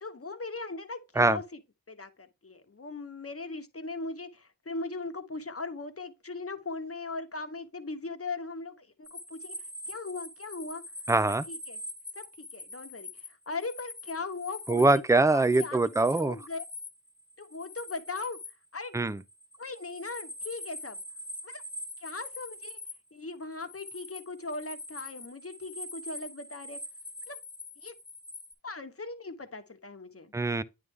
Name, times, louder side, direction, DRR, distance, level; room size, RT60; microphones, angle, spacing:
voice 1, 0.0-1.4 1.9-9.6 9.9-10.8 11.5-11.8 12.2-12.3 12.5-13.1 13.5-16.6 17.4-18.4 18.7-19.0 19.6-21.0 21.4-21.6 22.0-22.8 23.1-26.8 27.3-27.4 27.8-27.9 28.6-30.3, left 3 dB, 40° left, 1.1 m, -39 dB
sound 1, 9.0-22.9 23.3-28.5, left 1 dB, 10° left, 1.6 m, -43 dB
voice 2, 11.1-11.4 14.7-16.4 18.9-19.2 30.3-30.6, right 2 dB, 10° right, 0.4 m, -23 dB
9.4 x 3.3 x 3.5 m
wide cardioid pair, 55°, 37 cm